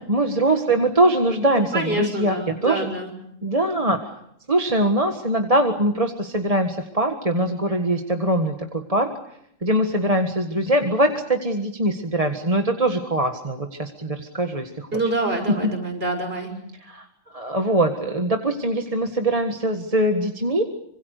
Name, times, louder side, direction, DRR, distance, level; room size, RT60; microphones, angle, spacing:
voice 1, 0.1-2.9 3.4-4.0 4.5-9.1 9.6-15.2 15.6-15.7 16.8-20.6, right 1 dB, 30° right, 4 dB, 1.8 m, -22 dB
voice 2, 1.7-3.1 14.9-16.5, right 2 dB, 50° right, 4 dB, 6.5 m, -26 dB
26.0 x 26.0 x 6.7 m, 0.74 s
omnidirectional pair, 1.3 m